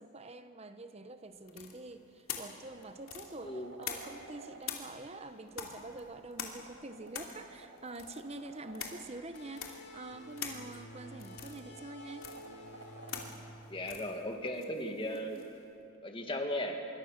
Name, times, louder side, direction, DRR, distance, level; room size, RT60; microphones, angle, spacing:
voice 1, 0.0-12.3 15.1-15.5, right 2 dB, 30° right, 9 dB, 0.8 m, -46 dB
sound 1, 1.5-4.3 4.6-15.6, left 7 dB, 70° left, 2.7 m, -45 dB
sound 2, 1.8-1.9 2.4-4.6 6.3-9.0 10.5-13.3 15.6-15.7, right 3 dB, 70° right, 2.1 m, -54 dB
sound 3, 9.3-14.6, equal, 50° left, 2.5 m, -52 dB
voice 2, 13.7-15.4 16.0-16.8, left 1 dB, 25° left, 3 dB, 2.1 m, -36 dB
26.0 x 23.0 x 6.6 m, 2.7 s
head